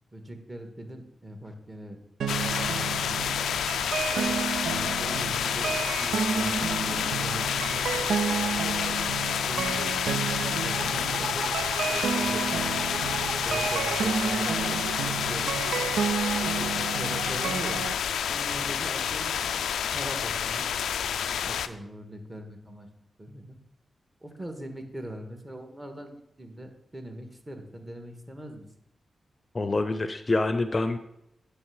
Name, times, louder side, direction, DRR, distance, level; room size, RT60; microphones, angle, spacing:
voice 1, 0.1-2.0 2.3-4.1 4.7-5.7 6.0-9.1 9.4-11.5 11.9-12.9 13.4-15.6 16.4-17.8 18.3-20.7 21.4-22.9 23.2-23.6 24.2-28.6, right 1 dB, 25° right, 4 dB, 1.6 m, -41 dB
sound 1, 2.2-17.9, right 6 dB, 90° right, 0.4 m, -31 dB
sound 2, 2.3-21.7, left 8 dB, 90° left, 0.3 m, -29 dB
voice 2, 29.5-31.0, left 2 dB, 40° left, 9 dB, 0.6 m, -26 dB
8.9 x 3.4 x 6.4 m, 0.80 s
cardioid pair, 50°, 0 cm